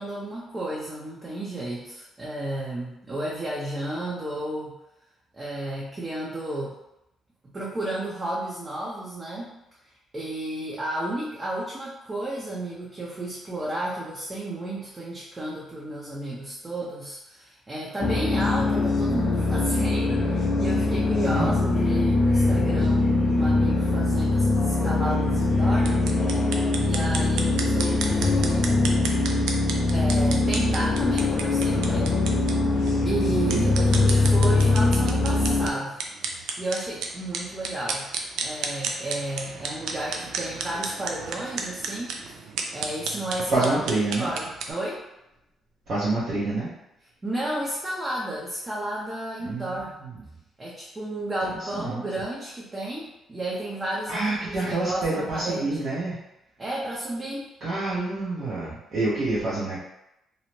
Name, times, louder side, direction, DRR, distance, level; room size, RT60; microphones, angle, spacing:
voice 1, 0.0-4.8 5.3-6.8 7.4-9.6 10.1-26.0 26.3-29.0 29.9-32.2 33.0-36.0 36.4-38.1 38.4-43.9 44.2-45.0 47.2-49.9 50.6-55.8 56.6-57.5, right 1 dB, 25° right, -5 dB, 0.6 m, -32 dB
sound 1, 18.0-35.7, left 2 dB, 50° left, 0.4 m, -22 dB
sound 2, 25.8-44.7, right 5 dB, 90° right, 0.3 m, -34 dB
voice 2, 33.4-33.8 43.5-44.3 45.9-46.7 49.4-50.3 51.6-52.0 54.1-56.2 57.6-59.8, right 2 dB, 60° right, -9 dB, 0.8 m, -27 dB
2.6 x 2.1 x 3.0 m, 0.87 s
cardioid pair, 90°, 0 cm